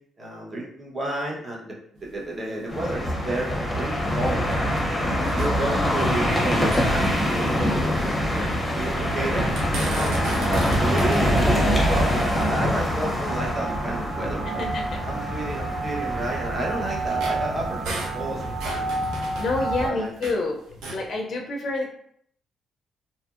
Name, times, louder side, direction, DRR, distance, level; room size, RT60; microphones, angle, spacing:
voice 1, 0.2-4.8 5.2-9.5 9.8-14.6 15.0-18.9 19.8-20.1, right 1 dB, 35° right, -3 dB, 0.9 m, -31 dB
sound 1, 2.0-4.9 5.2-6.3 6.6-9.0 9.4-13.4 14.0-14.1 14.6-14.7 15.5-20.4 20.7-21.1, right 2 dB, 90° right, 0.7 m, -38 dB
sound 2, 2.7-19.9, equal, 10° left, 0.8 m, -25 dB
sound 3, 3.7-19.9, right 4 dB, 65° right, 0.3 m, -35 dB
voice 2, 14.5-15.0 19.4-20.6 20.9-21.9, left 2 dB, 55° left, 0 dB, 0.4 m, -28 dB
2.7 x 2.5 x 2.4 m, 0.68 s
cardioid pair, 90°, 0 cm